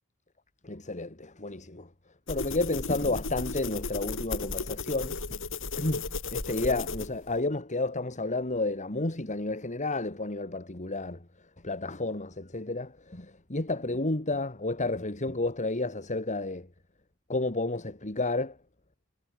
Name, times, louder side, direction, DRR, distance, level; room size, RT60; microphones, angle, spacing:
voice 1, 0.6-1.9 2.3-5.2 5.8-11.2 11.6-16.7 17.3-18.5, left 2 dB, 35° left, 2.4 m, -31 dB
sound 1, 2.3-7.4, left 3 dB, 60° left, 6.2 m, -35 dB
head